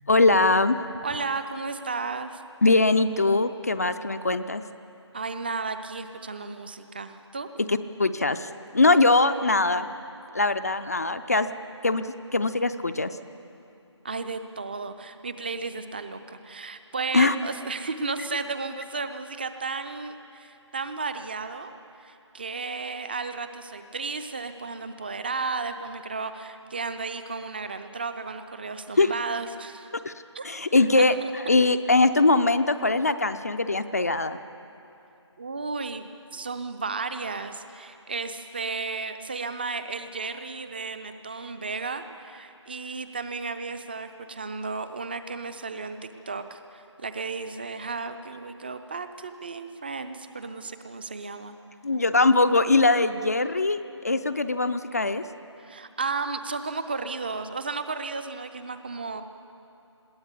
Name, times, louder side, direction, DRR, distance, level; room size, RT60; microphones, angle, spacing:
voice 1, 0.1-0.8 2.6-4.6 7.7-9.9 10.3-11.5 11.8-13.1 17.1-17.3 29.0-29.1 30.0-30.1 30.4-31.2 31.5-34.4 51.8-55.2, left 3 dB, 35° left, 9 dB, 0.5 m, -22 dB
voice 2, 1.0-2.4 5.1-7.5 14.0-21.7 22.0-29.9 30.3-30.5 31.0-31.5 35.4-46.0 46.3-51.6 55.6-59.2, right 4 dB, 20° right, 10 dB, 0.6 m, -34 dB
21.0 x 17.0 x 8.3 m, 2.8 s
figure-of-eight pair, 160°, 15 cm